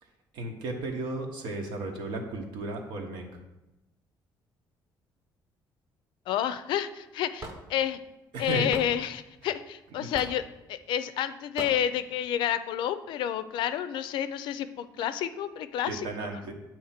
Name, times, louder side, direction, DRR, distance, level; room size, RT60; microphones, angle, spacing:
voice 1, 0.3-3.2 8.3-8.7 10.0-10.1 15.9-16.5, right 2 dB, 85° right, 3 dB, 1.1 m, -34 dB
voice 2, 6.3-8.0 8.4-10.4 10.7-16.4, left 10 dB, 80° left, 12 dB, 0.4 m, -30 dB
Hammer / Wood, 7.4-7.6 8.7-8.9 10.1-10.4 11.6-11.8, right 2 dB, 40° right, 0.9 m, -38 dB
7.9 x 3.0 x 5.8 m, 0.98 s
cardioid pair, 140°, 8 cm